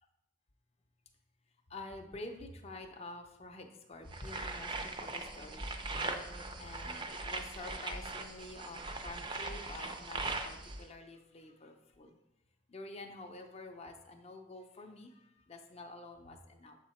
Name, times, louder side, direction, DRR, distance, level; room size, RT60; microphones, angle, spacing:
voice 1, 1.7-10.2 10.5-12.2 12.7-16.8, left 2 dB, 30° left, 4 dB, 0.5 m, -48 dB
sound 1, 4.1-10.8, right 3 dB, 25° right, 0.4 m, -40 dB
7.1 x 3.8 x 4.2 m, 0.87 s
head